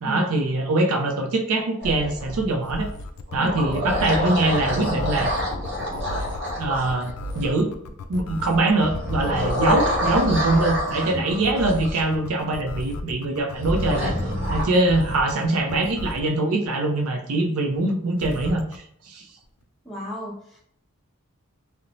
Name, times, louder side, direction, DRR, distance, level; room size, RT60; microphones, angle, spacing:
voice 1, 0.0-2.9 3.3-5.3 6.6-7.7 8.1-14.1 14.5-19.2, right 2 dB, 80° right, 3 dB, 0.5 m, -23 dB
sound 1, 1.8-2.8 3.3-7.5 8.8-12.0 13.6-14.6, equal, 50° right, 0.8 m, -27 dB
sound 2, 2.0-16.4 18.2-18.8, left 2 dB, 85° left, 0.3 m, -35 dB
voice 2, 19.8-20.6, equal, ahead, -6 dB, 0.7 m, -33 dB
2.5 x 2.1 x 2.9 m, 0.68 s
head